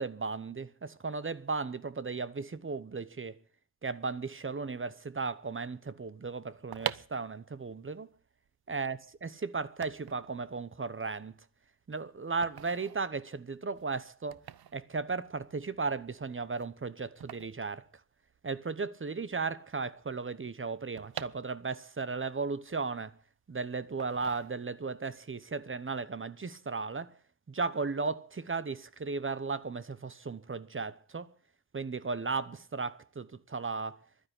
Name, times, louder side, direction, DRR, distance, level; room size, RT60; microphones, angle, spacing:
voice 1, 0.0-3.4 3.8-8.1 8.7-11.3 11.9-14.4 14.7-17.8 18.4-23.1 23.5-27.1 27.5-31.3 31.7-34.0, right 4 dB, 30° right, 1.0 m, -35 dB
sound 1, 6.5-18.6 18.9-19.0 19.1-22.0 22.4-23.4 24.0-25.0 25.3-25.6, right 10 dB, 60° right, 0.8 m, -45 dB
12.0 x 10.0 x 9.7 m
wide cardioid pair, 125°, 42 cm